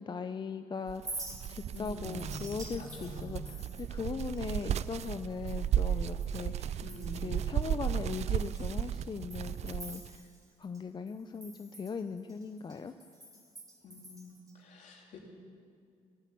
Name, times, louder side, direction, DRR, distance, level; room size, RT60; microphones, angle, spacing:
voice 1, 0.0-6.8 7.2-10.3 10.6-12.9, left 5 dB, 35° left, 9 dB, 0.6 m, -39 dB
Chink clink, 0.9-6.5 6.8-7.4 7.8-7.9 8.4-10.8 11.1-14.5, right 2 dB, 25° right, 2.9 m, -49 dB
sound 1, 0.9-10.1, right 10 dB, 55° right, 0.4 m, -35 dB
voice 2, 1.7-2.5 2.7-3.4 6.8-7.4 13.8-15.3, left 2 dB, 65° left, -1 dB, 3.3 m, -46 dB
17.0 x 8.3 x 8.3 m, 2.3 s
supercardioid pair, 60°, 14 cm